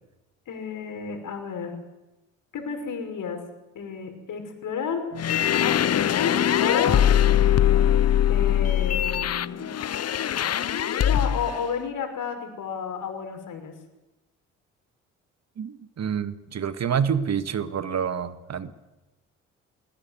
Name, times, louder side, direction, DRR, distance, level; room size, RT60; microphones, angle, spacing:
voice 1, 0.5-1.8 2.5-3.4 3.7-5.1 5.5-7.1 8.3-9.7 11.1-13.7, left 6 dB, 60° left, 6 dB, 5.9 m, -31 dB
sound 1, 5.1-11.6, left 10 dB, 45° left, 0.9 m, -22 dB
voice 2, 15.6-18.7, right 7 dB, 50° right, 12 dB, 1.8 m, -27 dB
21.5 x 20.0 x 9.5 m, 1.0 s
hypercardioid pair, 45°, 35 cm